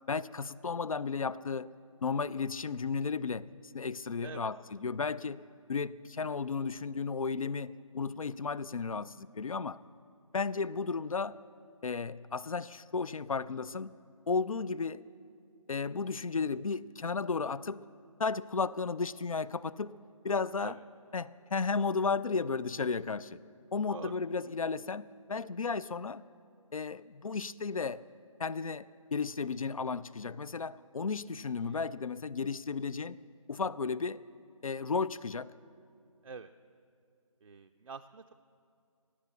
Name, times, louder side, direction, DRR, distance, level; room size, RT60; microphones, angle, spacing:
voice 1, 0.1-1.7 2.0-3.5 3.7-5.4 5.7-9.8 10.3-11.4 11.8-14.0 14.3-15.0 15.7-17.8 18.2-19.9 20.2-20.8 21.1-23.4 23.7-26.2 26.7-28.0 28.4-33.2 33.5-34.2 34.6-35.5, left 4 dB, 70° left, 19 dB, 0.5 m, -34 dB
voice 2, 37.4-38.3, right 5 dB, 65° right, 6 dB, 0.5 m, -46 dB
16.5 x 9.6 x 6.9 m, 2.5 s
figure-of-eight pair, 155°, 18 cm